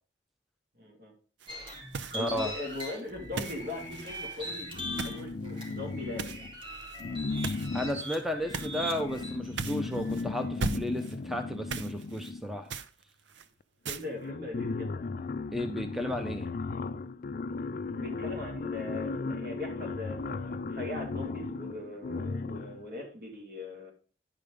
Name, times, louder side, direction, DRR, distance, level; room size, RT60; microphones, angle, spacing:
voice 1, 0.8-1.1 2.1-6.5 13.9-15.0 17.9-23.9, left 2 dB, 60° right, 0 dB, 3.1 m, -40 dB
sound 1, 1.4-1.6 1.9-2.4 2.7-5.2 5.5-5.7 6.2-6.4 6.8-7.0 7.4-8.2 8.5-8.8 9.1-9.2 9.6-10.2 10.6-11.2 11.7-12.3 12.7-13.5 13.9-14.1, right 4 dB, 85° right, 0.6 m, -38 dB
sound 2, 1.5-10.4, right 1 dB, 30° right, 2.9 m, -41 dB
voice 2, 2.1-2.5 7.7-12.7 15.5-16.5, left 1 dB, ahead, 5 dB, 0.7 m, -33 dB
sound 3, 4.7-6.5 7.0-12.7 13.6-13.7 14.0-22.9, left 3 dB, 50° left, 0.4 m, -36 dB
10.5 x 5.3 x 5.1 m, 0.39 s
head